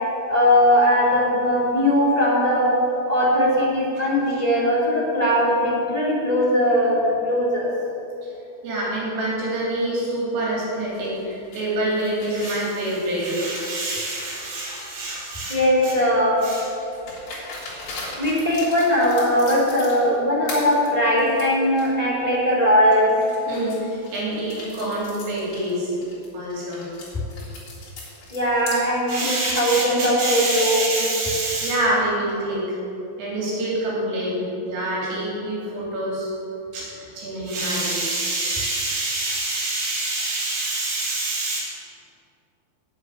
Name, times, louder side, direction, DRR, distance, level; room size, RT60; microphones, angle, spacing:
voice 1, 0.3-2.7 3.1-7.7 15.5-16.4 18.2-23.1 28.3-30.9, equal, 15° left, -6 dB, 1.2 m, -19 dB
voice 2, 8.6-15.6 15.8-15.9 16.4-16.7 23.5-26.1 26.3-26.9 29.1-32.8 33.2-36.3 36.7-36.9 37.2-41.6, right 1 dB, 75° right, -6 dB, 5.8 m, -26 dB
sound 1, 10.9-15.7 16.4-20.2 20.5-21.9 22.3-22.4 22.9-28.8, left 2 dB, 40° left, 4.2 m, -40 dB
9.9 x 8.0 x 9.5 m, 2.8 s
omnidirectional pair, 5.8 m